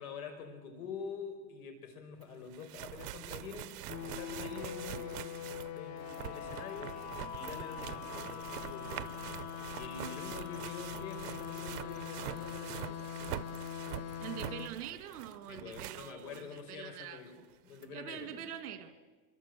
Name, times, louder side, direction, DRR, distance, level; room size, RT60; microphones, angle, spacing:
voice 1, 0.0-5.4 5.7-6.9 7.3-9.0 9.7-13.1 15.5-17.3 17.6-18.4, left 5 dB, 70° left, 6 dB, 5.5 m, -46 dB
sound 1, 2.2-2.3 2.5-16.6 17.0-17.1 17.8-17.9, right 14 dB, 85° right, 0.9 m, -45 dB
sound 2, 3.9-14.7, left 9 dB, 35° left, 1.3 m, -42 dB
voice 2, 14.2-17.2 17.9-18.9, right 10 dB, 70° right, 9 dB, 2.6 m, -44 dB
25.0 x 24.0 x 7.8 m, 1.3 s
supercardioid pair, 180°, 45 cm